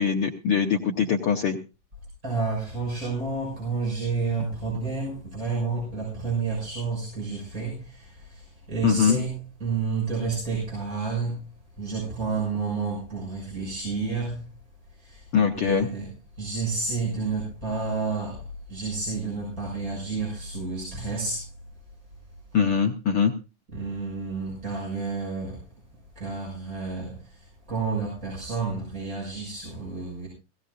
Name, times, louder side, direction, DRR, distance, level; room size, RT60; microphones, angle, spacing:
voice 1, 0.0-1.6 8.8-9.2 15.3-15.9 22.5-23.3, left 7 dB, 70° left, 2 dB, 1.3 m, -22 dB
voice 2, 2.2-11.5 11.8-14.5 14.9-15.3 15.6-16.1 16.4-21.5 23.7-25.6 26.1-30.3, right 4 dB, 25° right, -4 dB, 6.7 m, -30 dB
17.5 x 17.5 x 2.6 m, 0.29 s
omnidirectional pair, 3.8 m